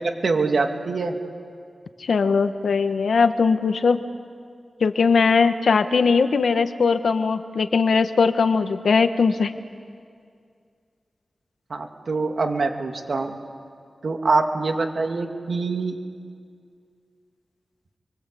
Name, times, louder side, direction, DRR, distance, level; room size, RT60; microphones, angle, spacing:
voice 1, 0.2-1.2 11.7-13.4 14.0-15.9, right 3 dB, 70° right, 4 dB, 2.5 m, -24 dB
voice 2, 2.0-4.0 4.8-9.5, left 5 dB, 85° left, 9 dB, 1.3 m, -20 dB
29.5 x 23.5 x 8.5 m, 2.3 s
wide cardioid pair, 80°, 0 cm